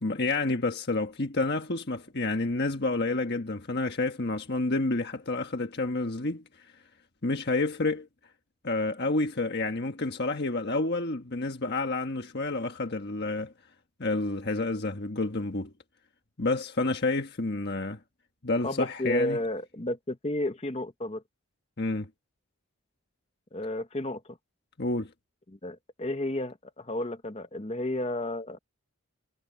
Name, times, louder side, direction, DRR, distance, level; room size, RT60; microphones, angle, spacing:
voice 1, 0.0-6.4 7.2-8.1 8.6-13.5 14.0-15.7 16.4-18.0 18.4-19.4 21.8-22.1 24.8-25.1, left 2 dB, 50° left, 1.4 m, -29 dB
voice 2, 18.6-21.2 23.5-24.4 25.5-28.6, left 1 dB, 30° left, 1.1 m, -32 dB
head